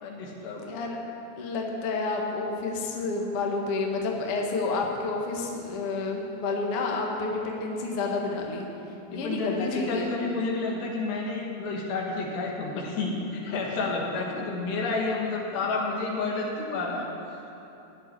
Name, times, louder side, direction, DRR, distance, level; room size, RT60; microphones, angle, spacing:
voice 1, 0.0-0.8 9.1-17.1, left 3 dB, 85° left, -2 dB, 3.9 m, -30 dB
voice 2, 0.6-1.0 1.4-8.7 9.1-10.1, left 3 dB, 65° left, 0 dB, 1.4 m, -30 dB
16.0 x 5.4 x 9.7 m, 2.9 s
omnidirectional pair, 4.8 m